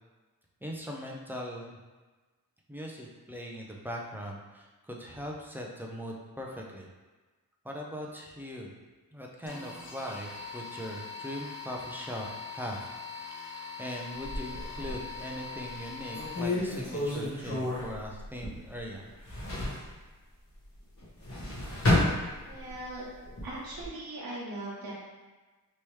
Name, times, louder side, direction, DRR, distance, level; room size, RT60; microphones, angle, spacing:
voice 1, 0.6-1.8 2.7-6.9 7.6-8.7 9.1-12.3 12.5-12.9 13.4-19.0, equal, 5° right, -2 dB, 0.3 m, -40 dB
sound 1, 9.5-16.8, left 5 dB, 80° left, 0.6 m, -42 dB
sound 2, 14.2-15.2 15.7-15.8 16.1-18.8 19.1-19.9 21.0-22.8 23.2-23.9, left 1 dB, 40° left, 1.2 m, -30 dB
voice 2, 22.4-23.1 23.4-24.9, right 2 dB, 85° right, -7 dB, 1.0 m, -39 dB
3.3 x 2.9 x 3.1 m, 1.3 s
wide cardioid pair, 170°, 35 cm